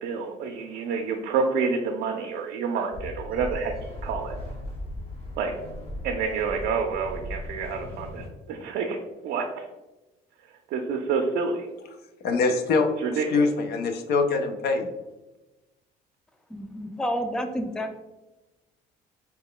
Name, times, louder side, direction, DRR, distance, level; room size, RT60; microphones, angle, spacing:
voice 1, 0.0-3.7 4.0-4.4 5.4-5.5 6.0-9.0 9.2-9.4 10.7-11.7 13.0-13.2, right 5 dB, 80° right, 2 dB, 0.5 m, -28 dB
sound 1, 2.9-8.3, left 1 dB, 35° left, 1.2 m, -37 dB
voice 2, 12.2-14.9, left 4 dB, 70° left, 6 dB, 0.5 m, -24 dB
voice 3, 16.5-18.0, equal, 5° left, 6 dB, 0.3 m, -30 dB
4.3 x 2.2 x 3.7 m, 1.0 s
cardioid pair, 110°, 17 cm